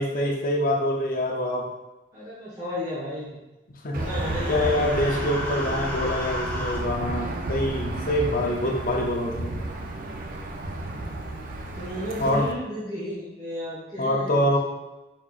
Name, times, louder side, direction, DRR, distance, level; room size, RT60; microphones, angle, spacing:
voice 1, 0.0-1.7 3.8-4.0 4.5-9.6 12.2-12.5 14.0-14.6, left 1 dB, 45° left, 1 dB, 0.6 m, -25 dB
voice 2, 2.1-3.3 3.9-5.5 11.7-14.6, equal, 20° right, -12 dB, 1.3 m, -34 dB
Aircraft / Engine, 3.9-12.5, right 2 dB, 45° right, 0.5 m, -32 dB
Human voice, 4.0-6.8, left 1 dB, 10° left, 0.6 m, -34 dB
4.8 x 4.4 x 2.4 m, 1.0 s
head